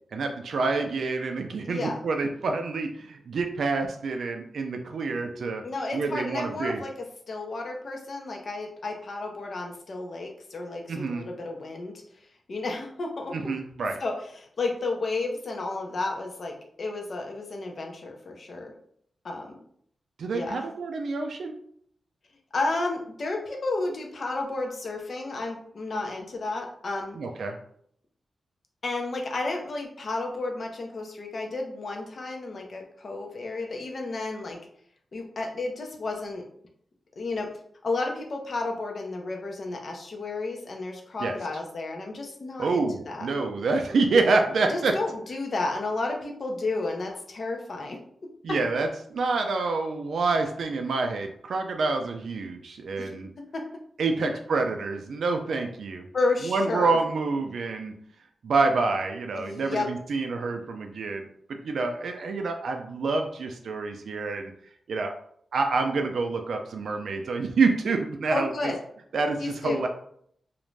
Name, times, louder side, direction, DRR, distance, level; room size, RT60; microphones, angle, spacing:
voice 1, 0.1-5.6 5.9-6.8 10.9-11.3 13.3-14.0 20.2-21.5 27.2-27.6 41.2-41.3 42.6-44.9 48.4-53.3 54.0-56.1 56.4-57.9 58.4-64.5 64.9-65.1 65.5-68.7 69.1-69.9, right 3 dB, 75° right, 4 dB, 0.3 m, -27 dB
voice 2, 1.6-2.0 5.6-6.9 7.3-12.0 12.5-13.5 14.0-18.7 19.2-19.5 20.3-20.7 22.5-27.2 28.8-34.6 35.1-36.4 37.2-37.5 37.8-43.3 44.7-48.0 48.5-48.6 53.0-53.2 53.5-53.6 56.1-57.0 59.3-59.9 68.3-68.8 69.4-69.8, left 3 dB, 45° left, 2 dB, 0.5 m, -32 dB
2.4 x 2.1 x 3.1 m, 0.65 s
wide cardioid pair, 160°, 0 cm